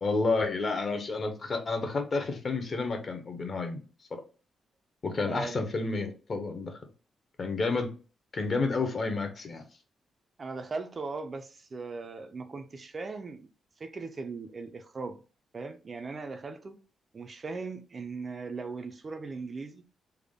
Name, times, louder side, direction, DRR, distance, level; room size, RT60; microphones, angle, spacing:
voice 1, 0.0-3.8 5.0-6.8 7.4-7.9 8.3-9.6, left 3 dB, 35° left, 0.6 m, -30 dB
voice 2, 5.2-5.6 10.4-13.5 13.8-15.2 15.5-16.8 17.1-19.8, right 4 dB, 30° right, 0.3 m, -38 dB
3.4 x 2.1 x 3.5 m
cardioid pair, 145°, 0 cm